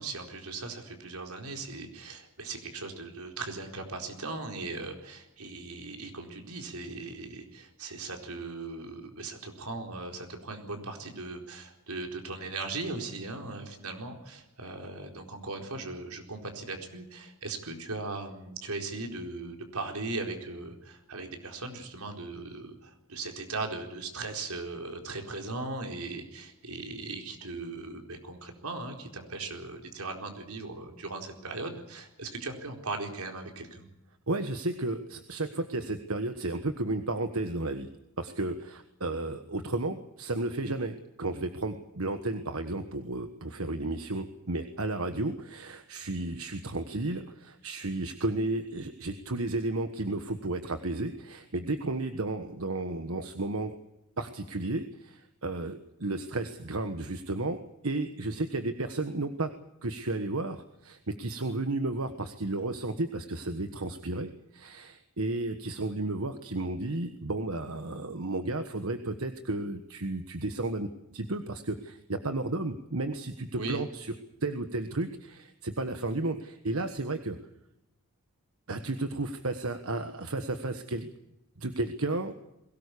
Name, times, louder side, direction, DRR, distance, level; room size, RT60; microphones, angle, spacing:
voice 1, 0.0-33.8 73.5-73.8, right 3 dB, 85° right, 3 dB, 4.4 m, -38 dB
voice 2, 34.3-37.9 38.2-53.7 54.2-59.5 59.8-74.1 74.4-77.4 78.7-81.1 81.6-82.3, right 2 dB, 70° right, 8 dB, 1.4 m, -33 dB
22.0 x 18.0 x 8.4 m, 0.88 s
head